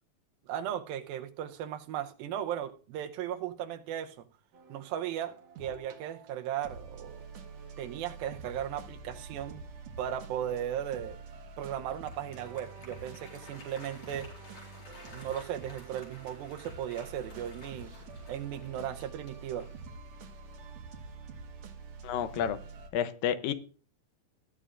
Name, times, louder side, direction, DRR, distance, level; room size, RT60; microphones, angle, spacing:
voice 1, 0.4-4.3 4.7-7.2 7.8-9.6 10.0-11.2 11.6-14.3 15.1-17.9 18.3-19.7, right 10 dB, 85° right, 2.7 m, -36 dB
sound 1, 4.5-22.9, right 4 dB, 60° right, 2.0 m, -47 dB
Applause, 11.8-19.9, left 2 dB, 50° left, 5.8 m, -53 dB
voice 2, 22.0-22.6 22.9-23.5, left 9 dB, 80° left, 2.4 m, -30 dB
20.5 x 12.5 x 2.5 m
omnidirectional pair, 4.1 m